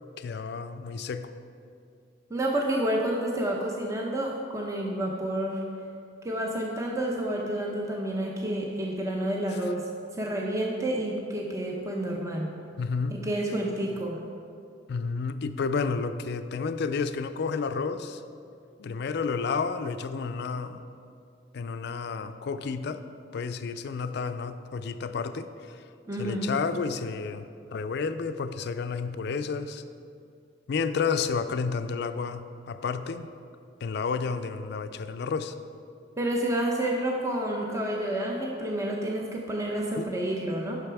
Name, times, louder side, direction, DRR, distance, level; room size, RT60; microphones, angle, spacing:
voice 1, 0.2-1.3 12.8-13.2 14.9-18.2 18.8-20.8 21.5-23.0 23.3-25.8 26.2-27.5 27.7-29.8 30.7-33.3 33.8-35.5 40.0-40.1, left 5 dB, 60° left, 10 dB, 0.4 m, -31 dB
voice 2, 2.3-5.6 6.2-12.5 13.1-14.2 26.1-26.5 36.2-40.8, right 1 dB, 15° right, -1 dB, 0.6 m, -29 dB
8.8 x 6.0 x 4.6 m, 2.4 s
head